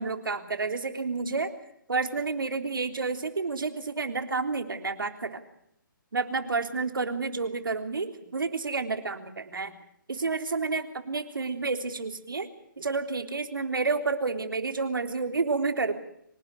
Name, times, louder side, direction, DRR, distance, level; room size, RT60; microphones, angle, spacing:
voice 1, 0.0-1.5 1.9-5.4 6.1-9.7 10.1-12.5 12.8-15.9, right 4 dB, 80° right, 7 dB, 3.5 m, -30 dB
26.0 x 18.5 x 6.6 m, 0.73 s
hypercardioid pair, 160°, 11 cm